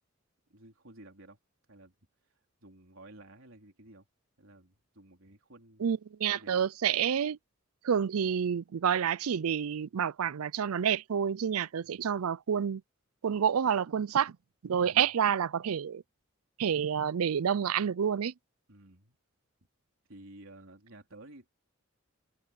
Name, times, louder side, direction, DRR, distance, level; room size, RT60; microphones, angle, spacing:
voice 1, 0.5-1.4 1.7-2.0 2.6-4.1 4.4-5.8 6.3-6.5 11.8-12.2 14.8-15.1 18.7-19.2 20.1-21.5, right 2 dB, 70° right, 3.8 m, -53 dB
voice 2, 5.8-7.4 7.8-12.8 13.2-14.4 14.6-16.0 16.6-18.3, right 8 dB, 90° right, 0.5 m, -29 dB
head